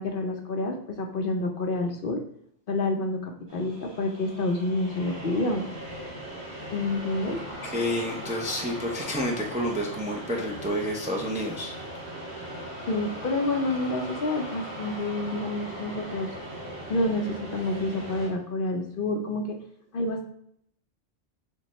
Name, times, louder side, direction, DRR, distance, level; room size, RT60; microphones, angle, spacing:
voice 1, 0.0-2.2 2.7-5.7 6.7-7.4 12.9-16.3 16.9-19.6 19.9-20.3, left 2 dB, 55° left, 3 dB, 0.7 m, -28 dB
sound 1, 3.5-18.3, right 1 dB, 40° right, 1.7 m, -39 dB
voice 2, 7.6-11.7, equal, 10° right, 0 dB, 0.4 m, -29 dB
6.6 x 2.2 x 3.0 m, 0.71 s
omnidirectional pair, 1.2 m